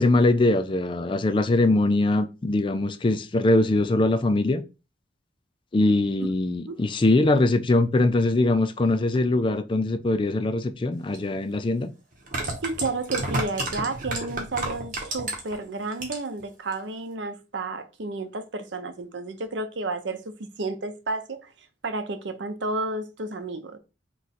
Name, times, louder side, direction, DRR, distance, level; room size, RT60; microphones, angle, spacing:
voice 1, 0.0-4.6 5.7-11.9, left 2 dB, 25° left, 0.4 m, -22 dB
sound 1, 11.1-11.2 12.1-15.6 15.9-16.4 16.7-16.8, right 2 dB, 45° right, 1.2 m, -30 dB
voice 2, 12.6-21.5 21.8-23.8, right 3 dB, 70° right, 0.7 m, -31 dB
3.6 x 3.1 x 4.2 m
head